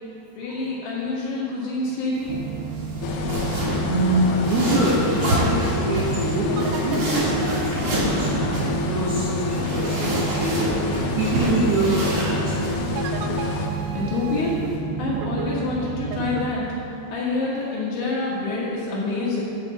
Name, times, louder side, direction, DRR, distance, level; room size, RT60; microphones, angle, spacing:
voice 1, 0.4-2.5 13.9-19.4, left 2 dB, 65° left, -5 dB, 3.1 m, -27 dB
sound 1, 2.1-14.8, equal, 50° right, 2.5 m, -29 dB
sound 2, 2.3-16.5, right 6 dB, 90° right, 3.3 m, -30 dB
sound 3, 3.0-13.7, left 5 dB, 80° left, 3.0 m, -28 dB
voice 2, 3.8-8.5 8.8-10.6 11.1-12.5, right 2 dB, 70° right, -7 dB, 2.5 m, -25 dB
10.0 x 4.8 x 7.1 m, 2.7 s
omnidirectional pair, 5.8 m